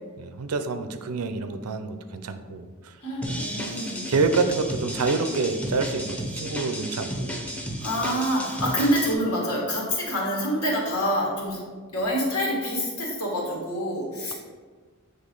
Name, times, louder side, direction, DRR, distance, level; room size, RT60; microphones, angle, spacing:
voice 1, 0.2-3.0 3.3-3.4 4.1-7.5, right 4 dB, 90° right, 9 dB, 0.5 m, -27 dB
voice 2, 3.0-4.0 7.8-11.6 11.9-14.3, equal, 75° left, -3 dB, 1.8 m, -26 dB
sound 1, 3.2-9.1, equal, 5° left, 0.6 m, -33 dB
8.5 x 3.3 x 3.8 m, 1.5 s
head